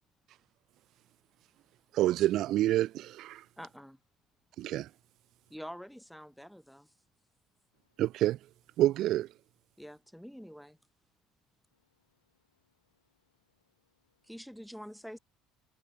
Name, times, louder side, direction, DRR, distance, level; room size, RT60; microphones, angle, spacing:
voice 1, 1.9-3.4 4.6-4.9 8.0-8.4 8.8-9.3, right 14 dB, 55° right, 0.7 m, -27 dB
voice 2, 3.6-4.0 5.5-6.9 9.8-10.8 14.2-15.2, equal, ahead, 2.5 m, -46 dB
voice 3, 11.7-13.2 13.6-14.2, left 8 dB, 90° left, 4.4 m, -79 dB
hypercardioid pair, 60°, 0 cm